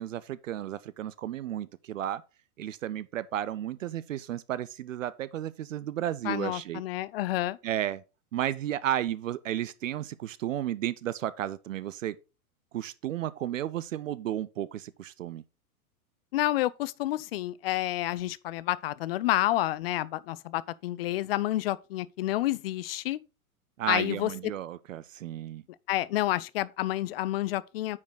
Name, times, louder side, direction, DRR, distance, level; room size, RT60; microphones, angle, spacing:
voice 1, 0.0-2.2 2.6-6.8 7.6-8.0 8.3-12.2 12.7-15.4 23.8-25.6, right 12 dB, 60° right, 0.6 m, -33 dB
voice 2, 6.2-7.6 16.3-23.2 23.9-24.3 25.9-28.0, left 15 dB, 45° left, 0.5 m, -29 dB
9.5 x 5.1 x 3.8 m
figure-of-eight pair, 100°, 44 cm